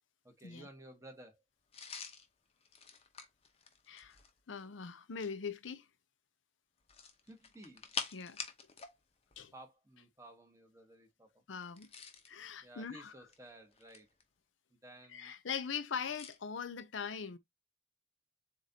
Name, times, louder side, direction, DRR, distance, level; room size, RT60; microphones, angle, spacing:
voice 1, 0.2-1.4 7.2-7.9 9.5-11.4 12.6-14.1 14.7-15.3, right 1 dB, 15° right, 1.2 m, -55 dB
sound 1, 1.7-4.4 6.8-9.0 9.2-9.4 11.6-12.4 13.1-14.2 16.1-16.4, left 6 dB, 30° left, 0.8 m, -46 dB
voice 2, 3.9-4.2 4.5-5.9 8.1-8.4 9.4-9.5 11.5-11.9 12.3-13.1 15.1-17.4, left 6 dB, 70° left, 0.6 m, -41 dB
7.3 x 2.5 x 2.8 m
head